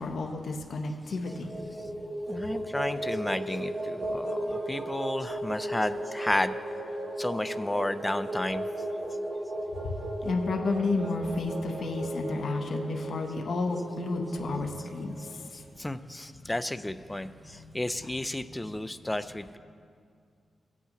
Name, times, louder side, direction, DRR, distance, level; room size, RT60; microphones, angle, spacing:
voice 1, 0.0-1.6 1.9-2.0 9.8-9.9 10.2-15.2 16.4-16.5 17.3-17.7 18.6-18.7, left 3 dB, 60° left, 2 dB, 0.7 m, -31 dB
sound 1, 1.1-15.4, right 1 dB, 20° right, 1.5 m, -35 dB
voice 2, 2.3-6.6 7.2-8.7 14.8-14.9 15.2-15.3 15.5-19.6, left 1 dB, 10° left, 11 dB, 0.3 m, -32 dB
16.5 x 8.2 x 2.9 m, 2.2 s
wide cardioid pair, 140°, 0 cm